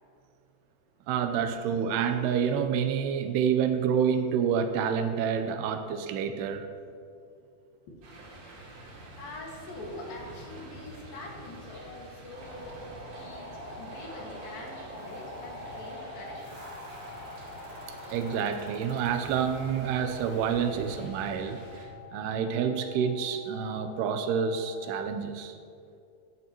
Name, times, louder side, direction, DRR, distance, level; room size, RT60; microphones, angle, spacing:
voice 1, 1.1-6.7 18.1-21.6 22.1-25.6, right 7 dB, 85° right, 8 dB, 2.8 m, -28 dB
sound 1, 8.0-21.9, right 1 dB, 65° right, 4.2 m, -47 dB
voice 2, 9.2-12.9 13.2-13.5 13.8-16.6, left 2 dB, 65° left, -1 dB, 3.5 m, -44 dB
sound 2, 12.3-21.1, equal, 45° right, 4.3 m, -45 dB
sound 3, 15.1-25.0, left 12 dB, 35° left, 2.9 m, -49 dB
15.0 x 14.0 x 3.0 m, 2.5 s
omnidirectional pair, 4.6 m